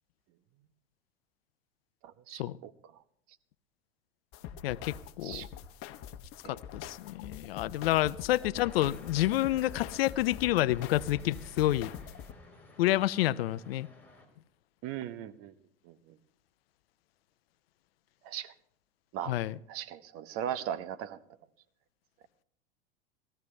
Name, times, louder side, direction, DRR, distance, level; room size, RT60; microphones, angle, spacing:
voice 1, 2.0-2.7 5.2-5.5 6.4-6.6 14.8-15.5 15.9-16.2 18.2-18.5 19.1-19.3 19.7-21.2, right 10 dB, 50° right, 13 dB, 1.0 m, -38 dB
sound 1, 4.3-12.3, left 9 dB, 45° left, 0.9 m, -44 dB
voice 2, 4.6-5.4 6.5-11.9 12.8-13.9 19.3-19.6, left 15 dB, 75° left, 19 dB, 0.6 m, -29 dB
sound 2, 8.6-14.3, left 3 dB, 5° left, 4.5 m, -54 dB
19.0 x 14.5 x 3.3 m, 0.68 s
hypercardioid pair, 90°, 30 cm